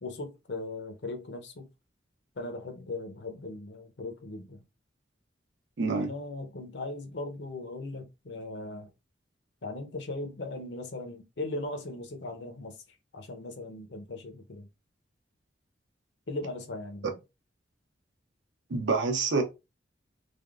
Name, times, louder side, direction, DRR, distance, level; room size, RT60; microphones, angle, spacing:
voice 1, 0.0-1.7 2.4-4.6 6.0-8.9 9.6-12.7 13.1-14.7 16.3-17.2, left 2 dB, 70° left, 0.7 m, -38 dB
voice 2, 5.8-6.1 17.0-17.1 18.7-19.4, right 4 dB, 80° right, 0.6 m, -27 dB
3.4 x 2.0 x 2.3 m
head